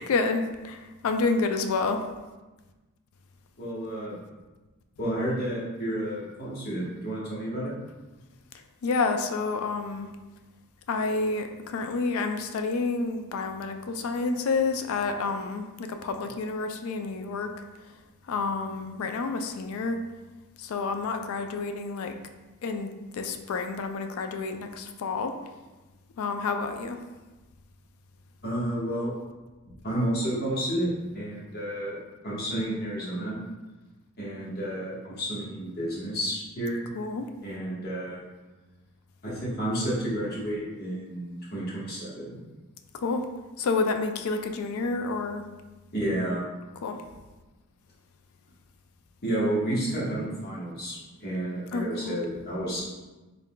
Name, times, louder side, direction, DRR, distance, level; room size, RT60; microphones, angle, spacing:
voice 1, 0.0-2.0 8.8-10.1 10.9-17.5 17.8-18.0 18.3-20.0 20.6-22.2 22.6-25.3 26.2-27.0 36.9-37.3 42.9-43.3 43.6-45.4 46.8-47.0 51.7-52.2, left 4 dB, 65° left, 6 dB, 0.3 m, -29 dB
voice 2, 3.6-4.2 5.0-7.7 28.4-29.1 29.8-32.0 32.2-33.4 34.2-36.8 37.4-38.2 39.2-42.4 45.9-46.4 49.2-52.8, right 1 dB, 45° left, -7 dB, 1.2 m, -31 dB
3.6 x 3.6 x 2.2 m, 1.2 s
head